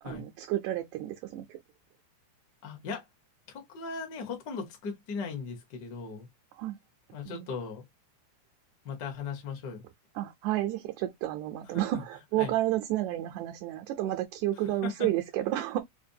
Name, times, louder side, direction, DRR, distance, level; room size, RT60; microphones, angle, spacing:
voice 1, 0.0-1.6 6.6-6.8 7.3-7.5 10.2-15.8, right 14 dB, 80° right, 1.8 m, -31 dB
voice 2, 2.6-3.0 3.5-6.3 7.1-7.8 8.8-9.8 12.4-12.5 14.8-15.1, left 5 dB, 55° left, 1.2 m, -38 dB
5.0 x 2.3 x 2.7 m
omnidirectional pair, 3.6 m